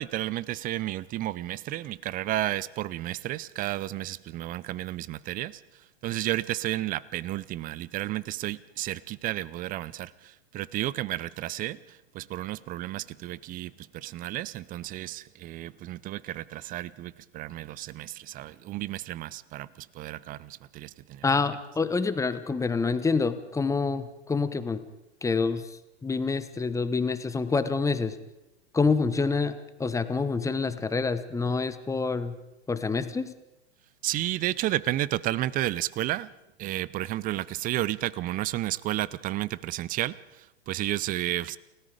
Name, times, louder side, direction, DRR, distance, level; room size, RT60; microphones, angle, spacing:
voice 1, 0.0-5.6 6.0-21.2 34.0-36.3 36.6-41.6, right 15 dB, 25° right, 0.7 m, -32 dB
voice 2, 21.2-24.8 25.2-25.7 26.0-28.2 28.7-29.5 29.8-32.3 32.7-33.3, left 4 dB, 10° left, 1.2 m, -27 dB
29.5 x 18.0 x 5.1 m
hypercardioid pair, 105°, 33 cm